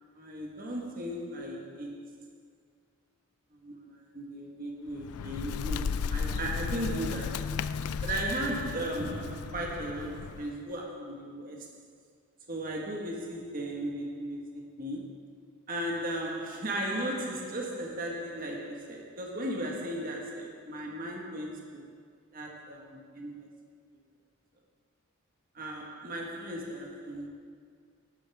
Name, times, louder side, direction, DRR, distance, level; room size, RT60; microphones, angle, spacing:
voice 1, 0.1-2.3 3.5-7.6 8.0-11.7 12.5-15.3 15.7-21.9 22.3-23.5 25.5-27.3, right 1 dB, 40° right, 1.5 m, -36 dB
Bird, 4.9-10.6, left 6 dB, 90° left, 0.4 m, -35 dB
13.0 x 11.5 x 3.6 m
head